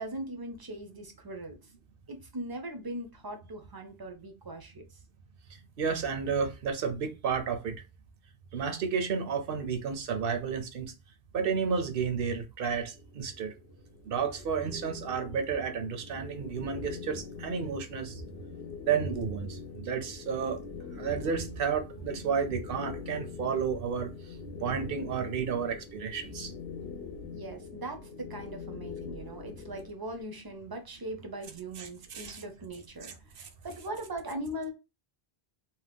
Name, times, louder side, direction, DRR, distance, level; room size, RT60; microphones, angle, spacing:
voice 1, 0.0-1.6 2.1-4.8 27.3-33.1 33.6-34.7, right 1 dB, 30° right, 0.5 m, -40 dB
voice 2, 5.8-7.7 8.5-10.9 11.3-13.5 14.1-18.2 18.8-20.6 21.0-24.1 24.6-26.5 31.8-32.4 33.0-33.5, right 6 dB, 65° right, 0.8 m, -32 dB
sound 1, 12.9-29.9, left 6 dB, 75° left, 0.8 m, -44 dB
2.8 x 2.2 x 3.4 m
omnidirectional pair, 1.1 m